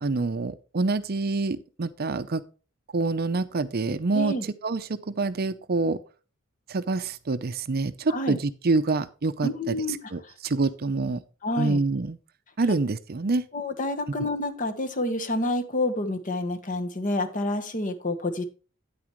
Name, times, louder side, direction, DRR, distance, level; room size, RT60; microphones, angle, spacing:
voice 1, 0.0-2.4 2.9-4.3 4.6-6.0 6.7-11.2 11.6-12.2 12.6-13.4, right 3 dB, 45° right, 13 dB, 0.6 m, -26 dB
voice 2, 4.1-4.4 8.1-8.4 9.4-10.0 10.2-10.3 11.4-11.8 13.5-18.4, left 1 dB, 40° left, 8 dB, 1.2 m, -28 dB
9.6 x 8.8 x 3.1 m, 0.34 s
head